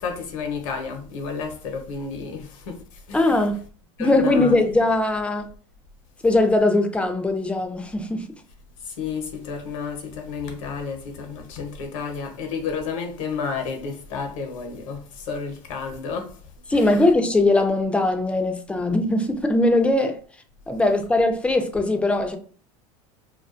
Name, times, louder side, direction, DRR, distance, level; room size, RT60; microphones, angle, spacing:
voice 1, 0.0-2.8 3.1-3.3 4.0-4.6 9.0-15.0 15.3-16.3 16.7-16.9, left 5 dB, 75° left, 0.7 m, -31 dB
voice 2, 3.1-3.6 4.0-5.5 6.2-8.3 16.7-20.2 20.7-22.4, left 2 dB, 5° left, 0.4 m, -20 dB
2.3 x 2.2 x 2.4 m
hypercardioid pair, 90°, 17 cm